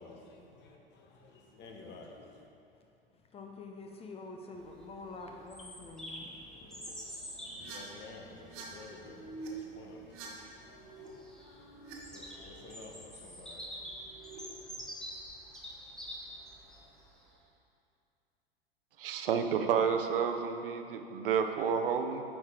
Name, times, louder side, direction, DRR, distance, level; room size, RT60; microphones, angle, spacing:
voice 1, 0.0-2.5 7.0-14.9, left 3 dB, 35° left, 1 dB, 1.1 m, -53 dB
voice 2, 3.1-6.9, left 3 dB, 20° left, 3 dB, 0.6 m, -47 dB
Bird vocalization bird call bird song, 4.5-17.3, equal, ahead, 1.1 m, -47 dB
sound 1, 6.4-6.9 7.5-7.8 8.3-8.6 8.9-9.5 9.9-11.1 11.4-11.9 12.3-12.7 13.7-14.4, right 4 dB, 45° right, 1.2 m, -50 dB
voice 3, 19.0-22.2, right 7 dB, 65° right, 6 dB, 0.7 m, -30 dB
9.4 x 5.0 x 3.7 m, 2.6 s
figure-of-eight pair, 90°, 29 cm